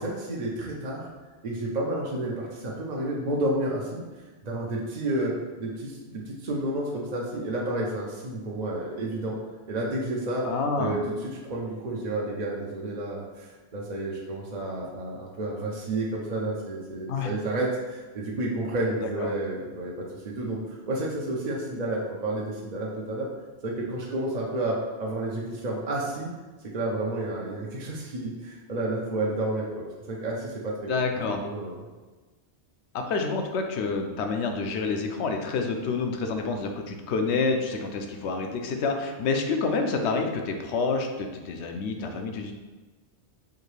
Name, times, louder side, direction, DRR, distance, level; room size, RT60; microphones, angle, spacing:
voice 1, 0.0-1.1 1.4-4.0 4.5-9.4 9.7-10.5 10.8-23.3 23.6-26.3 26.7-30.9 31.4-31.8, right 1 dB, 50° right, -3 dB, 0.6 m, -30 dB
voice 2, 10.4-11.0 17.1-17.3 19.0-19.3 30.9-31.4 32.9-42.5, left 4 dB, 75° left, 5 dB, 0.8 m, -28 dB
4.7 x 2.6 x 3.2 m, 1.3 s
omnidirectional pair, 1.2 m